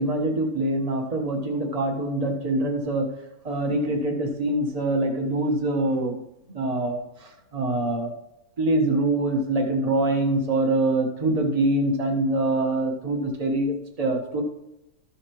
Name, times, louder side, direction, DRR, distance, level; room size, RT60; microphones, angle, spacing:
voice 1, 0.0-3.1 3.4-6.2 6.5-8.1 8.6-14.4, right 2 dB, 25° right, 2 dB, 1.3 m, -24 dB
13.5 x 6.9 x 3.1 m, 0.90 s
omnidirectional pair, 1.8 m